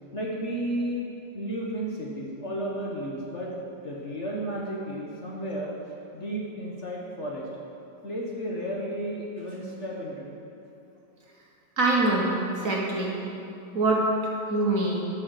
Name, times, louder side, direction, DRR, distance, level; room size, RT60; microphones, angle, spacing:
voice 1, 0.1-1.1 1.3-3.6 3.8-5.7 6.1-7.5 8.0-10.3, right 1 dB, 40° left, -3 dB, 1.2 m, -33 dB
voice 2, 11.8-13.2 13.7-15.0, right 2 dB, 45° right, -2 dB, 1.5 m, -24 dB
12.0 x 6.3 x 6.5 m, 2.8 s
omnidirectional pair, 2.2 m